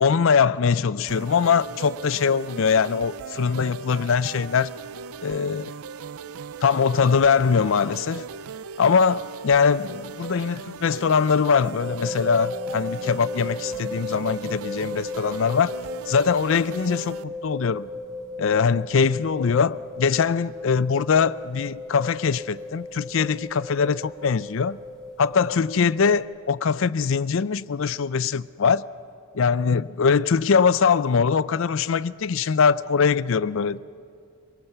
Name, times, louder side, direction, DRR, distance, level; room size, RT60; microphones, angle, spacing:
voice 1, 0.0-4.7 5.2-5.7 6.6-8.3 8.8-15.8 16.1-17.9 18.4-24.8 25.2-28.9 29.3-33.8, left 6 dB, 65° left, 0.4 m, -22 dB
sound 1, 1.1-17.2, right 6 dB, 75° right, 0.5 m, -39 dB
sound 2, 11.8-26.2, left 2 dB, 5° left, 4.0 m, -36 dB
26.5 x 18.5 x 6.7 m
head